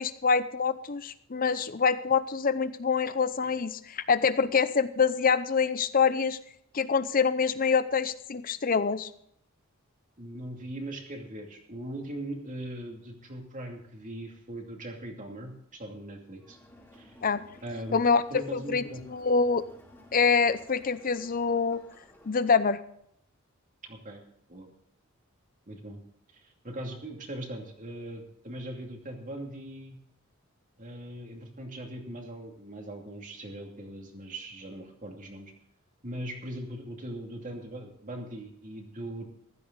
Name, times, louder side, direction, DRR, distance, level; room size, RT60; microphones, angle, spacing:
voice 1, 0.0-6.4 6.7-9.1 17.2-17.4 17.9-18.2 18.5-19.6 20.1-21.8 22.3-22.8, left 5 dB, 45° left, 14 dB, 0.7 m, -25 dB
voice 2, 10.2-16.6 16.9-17.2 17.6-18.0 18.3-19.0 23.8-24.2 24.5-24.7 25.7-26.0 26.6-30.0 30.8-35.5 36.0-39.2, right 1 dB, 40° right, 2 dB, 2.5 m, -40 dB
Crowd, 16.4-22.7, left 1 dB, 10° left, 2.7 m, -55 dB
15.0 x 12.5 x 4.0 m, 0.69 s
head